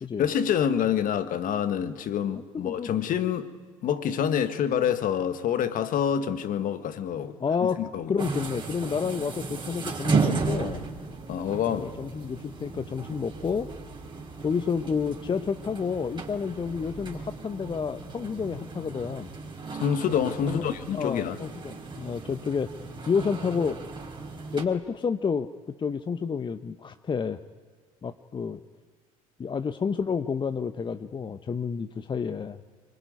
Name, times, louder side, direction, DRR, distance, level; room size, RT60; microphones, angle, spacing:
voice 1, 0.2-3.5 3.8-8.1 11.3-11.9 19.7-21.4, left 8 dB, 50° left, 1.7 m, -27 dB
voice 2, 2.5-2.9 7.4-7.8 8.1-10.8 11.7-13.7 14.4-19.3 20.5-22.7 23.1-23.8 24.5-25.5 25.8-27.4 28.0-28.6 29.4-32.6, left 6 dB, 25° left, 0.9 m, -30 dB
sound 1, 8.2-24.7, right 4 dB, 25° right, 4.4 m, -34 dB
25.0 x 22.0 x 9.5 m
hypercardioid pair, 70°, 18 cm